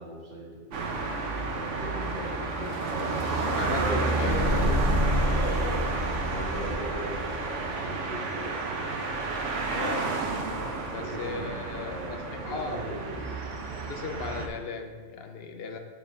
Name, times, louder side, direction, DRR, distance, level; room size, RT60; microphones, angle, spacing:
voice 1, 0.0-4.9 5.4-9.2 10.9-13.3, right 1 dB, 35° right, -7 dB, 2.3 m, -39 dB
sound 1, 0.7-14.5, right 3 dB, 85° right, 1.2 m, -31 dB
voice 2, 3.5-4.3 9.7-10.0 10.9-12.8 13.9-15.8, left 4 dB, 60° left, 5 dB, 0.8 m, -37 dB
sound 2, 4.2-7.4, equal, 10° left, 1.4 m, -28 dB
6.9 x 6.7 x 3.9 m, 1.5 s
omnidirectional pair, 1.2 m